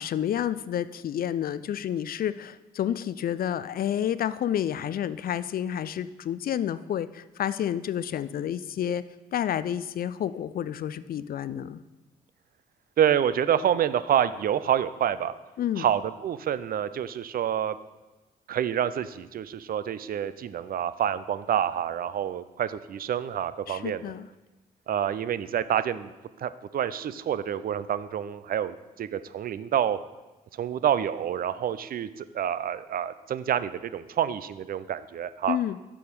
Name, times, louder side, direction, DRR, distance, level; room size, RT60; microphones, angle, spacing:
voice 1, 0.0-9.0 9.3-11.8 15.6-15.9 23.7-24.3 35.5-35.8, left 10 dB, 50° left, 15 dB, 0.4 m, -30 dB
voice 2, 13.0-15.3 15.8-17.7 18.5-24.0 24.9-26.1 26.4-30.0 30.6-35.6, right 9 dB, 50° right, 14 dB, 0.4 m, -27 dB
6.9 x 4.9 x 5.3 m, 1.1 s
hypercardioid pair, 45°, 19 cm